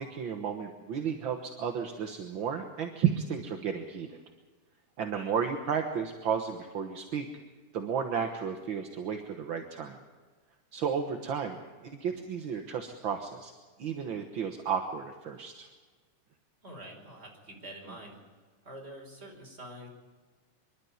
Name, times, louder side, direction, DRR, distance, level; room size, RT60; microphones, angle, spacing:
voice 1, 0.0-4.2 5.0-7.2 7.7-10.0 10.7-13.5 13.8-15.7, right 7 dB, 50° right, 5 dB, 1.6 m, -33 dB
voice 2, 16.6-18.2 18.6-19.9, right 1 dB, 20° right, 0 dB, 5.1 m, -46 dB
25.5 x 12.0 x 9.5 m, 1.4 s
omnidirectional pair, 3.5 m